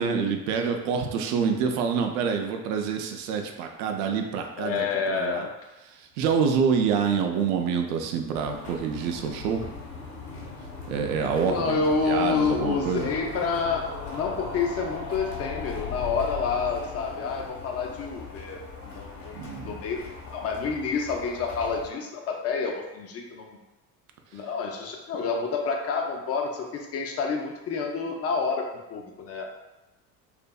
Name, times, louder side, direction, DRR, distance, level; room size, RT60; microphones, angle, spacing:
voice 1, 0.0-5.5 6.2-9.6 10.9-13.1 19.4-19.8, right 6 dB, 70° right, 4 dB, 0.5 m, -27 dB
voice 2, 4.6-5.5 11.4-19.4 19.7-20.0 20.3-23.6 24.3-29.5, left 5 dB, 30° left, 2 dB, 0.5 m, -28 dB
sound 1, 7.6-19.4 19.7-19.8 20.0-20.1 20.3-20.4, left 4 dB, 90° left, 1.0 m, -40 dB
sound 2, 8.3-21.9, left 4 dB, 60° left, 1.2 m, -43 dB
2.5 x 2.5 x 2.2 m, 0.99 s
hypercardioid pair, 65°, 47 cm